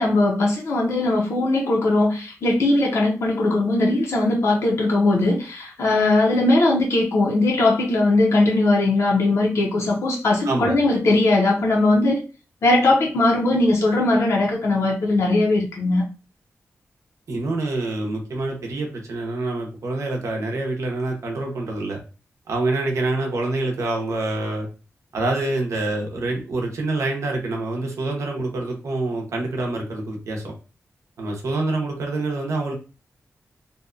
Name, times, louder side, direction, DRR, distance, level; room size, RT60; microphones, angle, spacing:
voice 1, 0.0-12.2 12.6-16.0, left 2 dB, 65° left, -2 dB, 0.6 m, -19 dB
voice 2, 10.4-10.8 17.3-22.0 22.5-24.7 25.1-30.5 31.2-32.7, right 2 dB, 75° right, 1 dB, 0.7 m, -26 dB
2.6 x 2.1 x 2.4 m, 0.34 s
wide cardioid pair, 175°, 5 cm